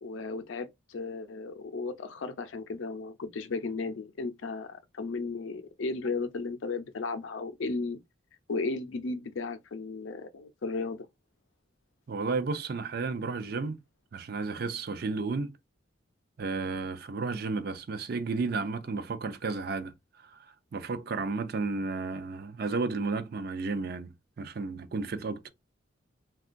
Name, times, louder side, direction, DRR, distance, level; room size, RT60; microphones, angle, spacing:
voice 1, 0.0-8.0 8.5-11.1, left 3 dB, 75° left, 0.5 m, -35 dB
voice 2, 12.1-13.8 14.1-15.6 16.4-25.5, right 4 dB, 50° right, 0.4 m, -33 dB
3.6 x 2.3 x 2.4 m
head